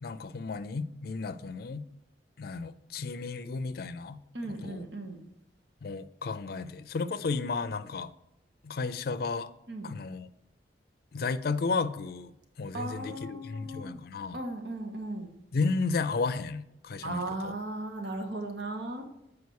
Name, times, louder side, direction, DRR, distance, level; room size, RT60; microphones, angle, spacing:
voice 1, 0.0-1.8 2.4-4.9 5.8-8.1 8.6-9.5 9.8-10.3 11.1-12.3 12.6-14.4 15.5-17.5, left 4 dB, 60° left, 0.4 m, -33 dB
voice 2, 4.3-5.2 9.7-9.9 12.7-14.0 14.3-15.3 17.0-19.0, right 2 dB, 85° right, 1.3 m, -36 dB
8.2 x 4.8 x 4.7 m
head